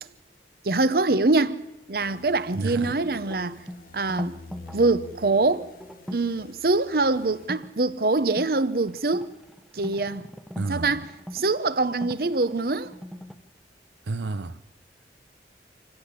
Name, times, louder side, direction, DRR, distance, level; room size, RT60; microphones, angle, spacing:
voice 1, 0.6-1.6 1.9-3.6 3.9-4.4 4.7-5.7 6.1-9.3 9.7-10.3 10.7-11.1 11.3-12.9, right 3 dB, 55° right, 0.8 m, -24 dB
sound 1, 2.0-7.5, left 3 dB, 50° left, 1.4 m, -48 dB
voice 2, 2.5-3.0 10.6-11.1 14.0-14.6, right 3 dB, 85° right, 0.7 m, -30 dB
sound 2, 2.8-6.3 7.4-7.7 8.2-13.3, equal, ahead, 0.9 m, -41 dB
26.5 x 16.0 x 8.3 m
head